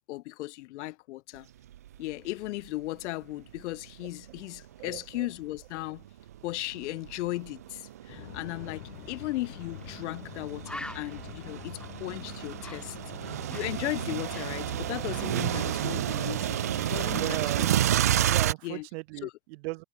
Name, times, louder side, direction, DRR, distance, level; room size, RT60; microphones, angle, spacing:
voice 1, 0.1-1.5 2.0-6.0 6.4-17.7 18.6-18.9 19.2-19.3, left 18 dB, 50° left, 6.2 m, -36 dB
sound 1, 1.7-2.0 2.4-2.5 3.5-5.2 5.8-18.5, right 12 dB, 15° right, 0.3 m, -31 dB
voice 2, 4.8-5.3 17.1-17.7 18.2-19.8, right 25 dB, 45° right, 7.6 m, -37 dB
sound 2, 8.1-18.5, left 13 dB, 85° left, 6.0 m, -46 dB
Bird, 9.8-9.9 10.3-10.4 10.6-13.8 14.1-15.8 16.1-16.4, left 1 dB, ahead, 1.2 m, -46 dB
supercardioid pair, 175°, 43 cm